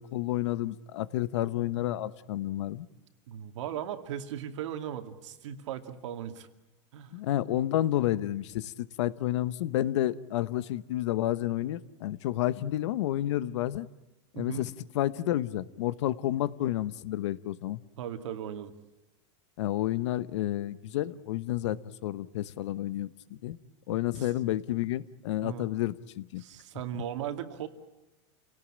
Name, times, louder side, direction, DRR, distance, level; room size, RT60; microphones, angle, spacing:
voice 1, 0.0-2.9 7.1-8.7 9.0-13.9 14.3-17.8 19.6-23.6 23.9-26.4, left 14 dB, 75° left, 17 dB, 1.0 m, -30 dB
voice 2, 3.3-6.5 6.9-7.2 14.3-14.7 18.0-18.7 23.9-24.3 25.4-25.7 26.4-27.7, right 10 dB, 75° right, 8 dB, 2.3 m, -38 dB
28.5 x 18.0 x 8.8 m, 1.0 s
supercardioid pair, 160°, 15 cm